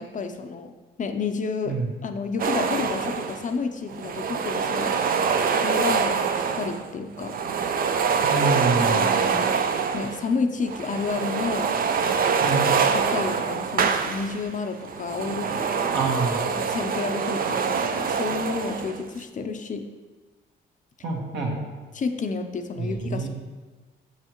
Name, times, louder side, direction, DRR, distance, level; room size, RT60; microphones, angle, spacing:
voice 1, 0.0-5.0 5.6-7.3 8.9-9.5 9.9-11.7 12.8-16.1 16.5-19.8 21.9-23.3, left 4 dB, 40° left, 7 dB, 0.6 m, -30 dB
sound 1, 2.4-3.5 3.9-6.9 7.2-10.3 10.6-14.5 14.8-19.1, right 6 dB, 45° right, 0.5 m, -25 dB
voice 2, 8.2-9.1 12.4-12.7 15.9-16.4 21.0-21.5 22.8-23.3, right 3 dB, 65° right, -1 dB, 1.4 m, -26 dB
6.8 x 5.6 x 3.0 m, 1.3 s
cardioid pair, 90°, 20 cm